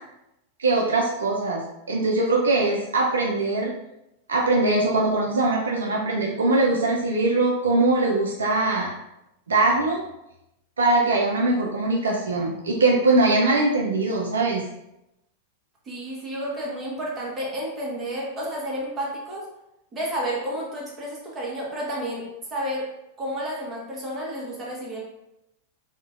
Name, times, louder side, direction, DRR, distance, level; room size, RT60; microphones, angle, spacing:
voice 1, 0.6-1.6 1.9-3.7 4.3-8.9 9.5-10.0 10.8-14.6, right 2 dB, 70° right, -1 dB, 0.3 m, -21 dB
voice 2, 15.9-19.5 19.9-22.3 22.5-22.9 23.2-25.0, equal, 20° right, -4 dB, 0.8 m, -31 dB
2.4 x 2.0 x 2.4 m, 0.87 s
figure-of-eight pair, 90°, 0 cm